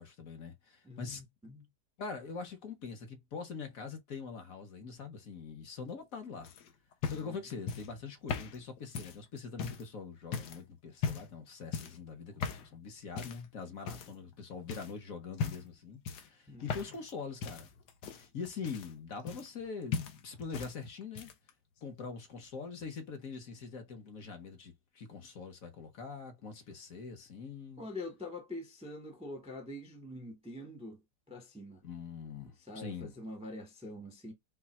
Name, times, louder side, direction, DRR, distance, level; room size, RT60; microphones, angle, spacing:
voice 1, 0.0-1.2 2.0-6.5 7.1-17.7 18.1-21.3 21.8-27.8 31.8-33.1, left 5 dB, 55° left, 1.3 m, -43 dB
voice 2, 0.8-1.7 16.5-16.6 27.8-31.0 31.3-31.8 32.6-34.3, left 1 dB, 5° right, 0.5 m, -45 dB
sound 1, 6.4-9.9 10.3-10.6 11.0-11.4 11.7-12.0 12.4-12.7 13.2-13.5 13.9-14.4 14.7-14.9 15.3-15.8 16.1-17.1 17.4-19.7 19.9-20.7 21.0-21.5 22.4-22.5, left 6 dB, 75° left, 1.4 m, -38 dB
4.6 x 2.4 x 4.2 m
omnidirectional pair, 1.8 m